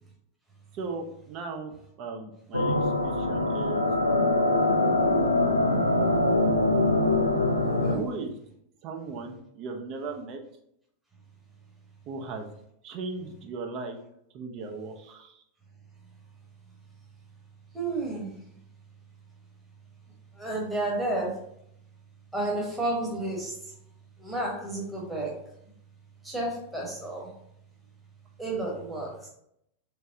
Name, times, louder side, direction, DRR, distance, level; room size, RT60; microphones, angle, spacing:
voice 1, 0.7-3.9 7.9-8.4 8.8-10.4 12.1-12.5 12.8-14.0 14.3-15.4, right 4 dB, 40° right, 3 dB, 0.5 m, -37 dB
sound 1, 2.5-8.0, left 2 dB, 85° left, 0.3 m, -23 dB
voice 2, 7.6-8.0 17.7-18.4 20.4-21.4 22.3-23.6 24.2-25.4 26.2-27.3 28.4-29.2, right 2 dB, 5° right, -4 dB, 1.0 m, -31 dB
3.3 x 3.1 x 2.6 m, 0.74 s
figure-of-eight pair, 90°, 0 cm